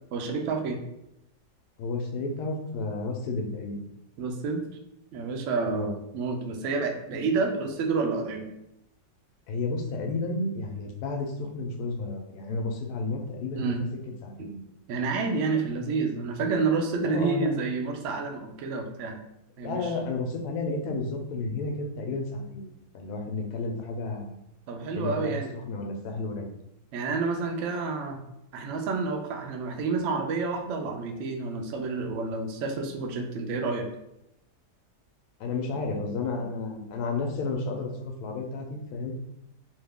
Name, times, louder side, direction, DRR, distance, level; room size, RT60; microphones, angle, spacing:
voice 1, 0.1-0.8 4.2-4.6 5.1-8.4 13.6-13.8 14.4-14.5 14.9-19.2 19.6-19.9 24.7-25.5 26.9-28.2 28.5-33.9, right 4 dB, 70° right, 3 dB, 0.7 m, -29 dB
voice 2, 1.8-3.9 5.7-5.9 9.5-13.7 14.2-14.6 17.0-17.5 19.6-24.3 24.9-26.5 35.4-39.1, left 3 dB, 75° left, 3 dB, 1.1 m, -32 dB
2.9 x 2.4 x 3.4 m, 0.84 s
omnidirectional pair, 1.7 m